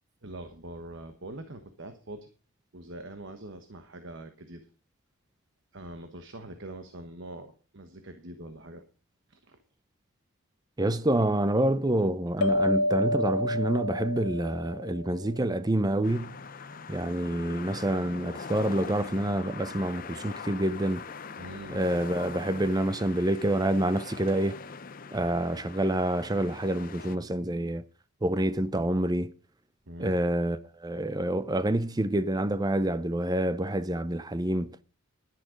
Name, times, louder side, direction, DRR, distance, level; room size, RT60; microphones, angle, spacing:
voice 1, 0.2-2.3 2.7-4.7 5.7-8.8 9.3-9.6 21.4-21.8 29.9-30.1, right 1 dB, 55° right, 1.2 m, -43 dB
voice 2, 10.8-16.4 16.9-21.0 21.7-24.6 25.1-27.8 28.2-29.3 30.0-34.8, right 1 dB, 15° right, 0.6 m, -27 dB
sound 1, 12.4-15.4, left 1 dB, 80° left, 0.7 m, -29 dB
sound 2, 16.0-27.2, left 5 dB, 40° left, 0.6 m, -42 dB
11.0 x 10.0 x 5.1 m
head